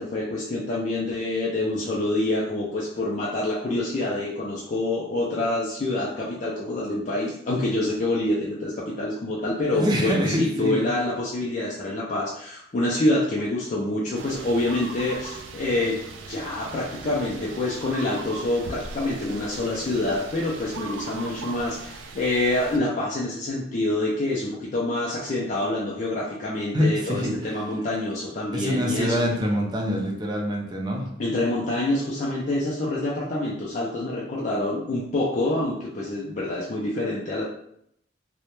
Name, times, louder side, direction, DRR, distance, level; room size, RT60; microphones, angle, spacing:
voice 1, 0.0-16.0 16.3-29.2 31.2-37.4, left 2 dB, 40° left, -4 dB, 0.3 m, -26 dB
voice 2, 9.7-10.9 26.7-27.3 28.5-31.1, equal, 25° right, -1 dB, 0.4 m, -25 dB
sound 1, 14.1-22.8, right 4 dB, 85° right, 0.3 m, -39 dB
2.1 x 2.0 x 2.9 m, 0.73 s
head